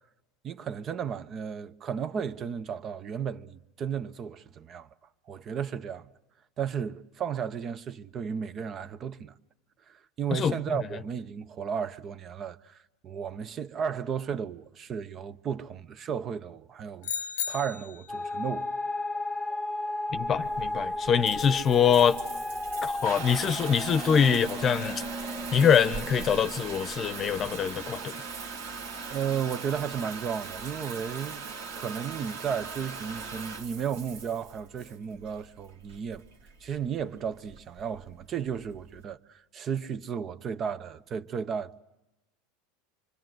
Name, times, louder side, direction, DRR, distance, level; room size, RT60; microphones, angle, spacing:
voice 1, 0.4-4.9 5.3-6.1 6.6-9.3 9.9-18.7 29.1-31.4 31.7-36.2 36.6-41.8, right 7 dB, 40° right, 0.8 m, -34 dB
sound 1, 17.0-18.1, left 8 dB, 80° left, 0.9 m, -34 dB
sound 2, 18.1-28.1, left 2 dB, ahead, 1.1 m, -35 dB
voice 2, 20.1-22.2 22.8-25.0 25.5-28.2, left 7 dB, 35° left, 0.8 m, -24 dB
Water tap faucet / Bathtub (filling or washing) / Trickle dribble, 20.1-39.0, right 4 dB, 80° right, 2.3 m, -39 dB
25.0 x 25.0 x 7.8 m
hypercardioid pair, 100°, 0 cm